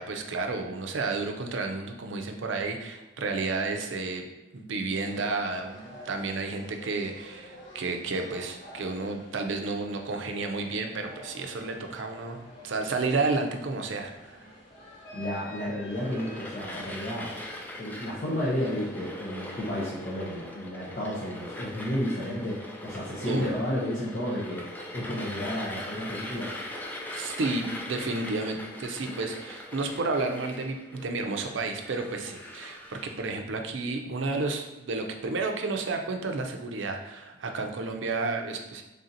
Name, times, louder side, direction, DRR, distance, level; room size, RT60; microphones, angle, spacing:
voice 1, 0.0-4.2 4.5-14.5 23.2-23.5 27.1-38.8, right 3 dB, 70° right, 4 dB, 0.5 m, -31 dB
sound 1, 4.9-16.6, left 1 dB, 55° left, 1.2 m, -48 dB
voice 2, 15.1-17.3 17.8-24.6 24.9-26.5, equal, 40° left, -6 dB, 0.7 m, -32 dB
sound 2, 15.9-33.2, left 1 dB, 10° left, 0.3 m, -41 dB
3.4 x 2.7 x 3.8 m, 1.0 s
head